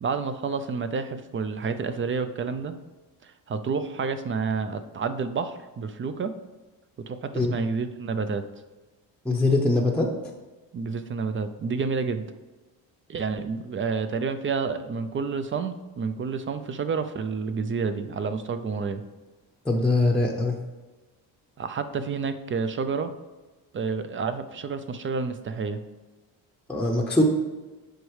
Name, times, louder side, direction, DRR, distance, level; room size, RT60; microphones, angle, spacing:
voice 1, 0.0-2.7 3.2-6.3 7.0-8.4 10.7-12.3 13.1-19.0 21.6-23.1 23.7-25.8, right 5 dB, 30° right, 10 dB, 0.4 m, -29 dB
voice 2, 9.2-10.1 19.6-20.6 26.7-27.2, left 2 dB, 5° left, 0 dB, 0.7 m, -22 dB
7.9 x 5.3 x 3.2 m, 1.2 s
cardioid pair, 110°, 42 cm